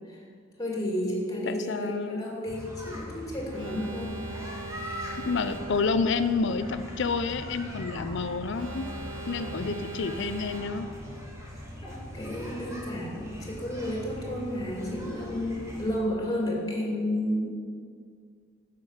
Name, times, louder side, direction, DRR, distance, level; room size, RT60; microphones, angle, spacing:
voice 1, 0.6-4.2 11.8-17.5, left 1 dB, 20° left, -3 dB, 2.4 m, -32 dB
voice 2, 1.5-2.3 5.3-8.9 9.3-10.9, left 4 dB, 60° left, 11 dB, 0.5 m, -29 dB
sound 1, 2.4-16.0, left 1 dB, 15° right, 1.7 m, -41 dB
Alarm, 3.5-6.1 8.5-11.1, right 2 dB, 75° right, 1.5 m, -41 dB
9.8 x 5.9 x 7.2 m, 2.1 s
head